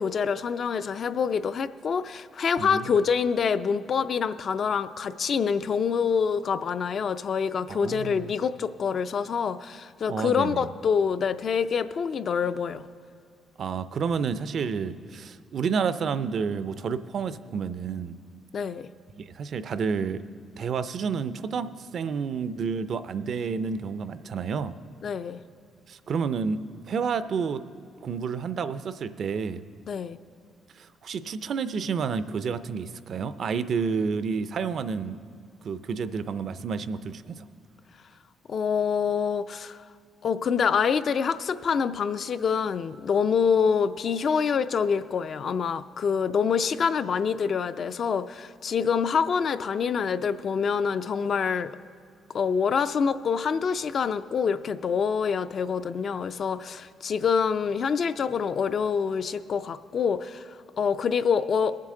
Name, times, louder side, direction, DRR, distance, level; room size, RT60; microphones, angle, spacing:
voice 1, 0.0-12.8 18.5-18.9 25.0-25.4 29.9-30.2 38.5-39.8 40.2-51.7 52.3-60.4 60.8-61.8, left 6 dB, 50° left, 12 dB, 0.4 m, -26 dB
voice 2, 2.6-2.9 7.7-8.3 10.1-10.7 13.6-18.2 19.2-20.2 20.6-24.8 25.9-26.6 26.9-27.6 28.0-29.6 30.8-35.2 35.6-37.4, right 6 dB, 60° right, 13 dB, 0.4 m, -30 dB
20.0 x 7.5 x 3.7 m, 2.2 s
cardioid pair, 90°, 0 cm